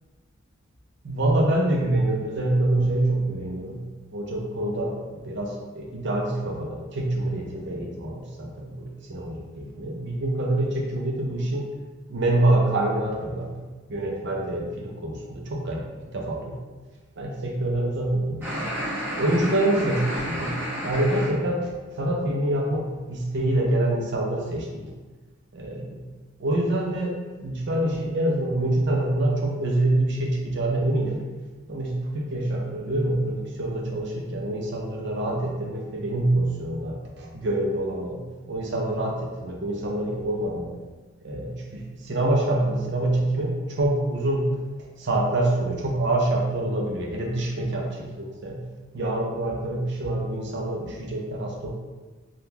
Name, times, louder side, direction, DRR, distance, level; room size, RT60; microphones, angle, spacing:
voice 1, 1.0-3.8 4.1-11.6 12.1-13.5 13.9-16.4 17.2-18.7 19.2-20.5 20.8-24.8 25.5-26.0 26.4-27.1 27.4-31.2 31.7-38.2 38.5-40.7 41.2-44.5 45.0-48.6 48.9-51.7, right 1 dB, 60° right, -1 dB, 0.6 m, -26 dB
sound 1, 18.4-21.3, equal, 10° right, 1.0 m, -31 dB
3.5 x 2.4 x 2.8 m, 1.3 s
head